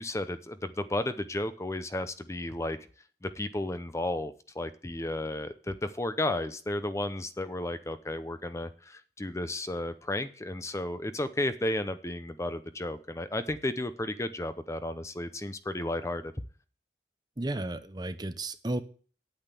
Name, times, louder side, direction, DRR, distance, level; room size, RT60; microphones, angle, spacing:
voice 1, 0.0-2.8 3.2-16.3, left 1 dB, 15° left, 11 dB, 0.6 m, -33 dB
voice 2, 17.4-18.8, right 2 dB, 25° right, 10 dB, 0.8 m, -33 dB
8.9 x 8.1 x 6.8 m, 0.41 s
head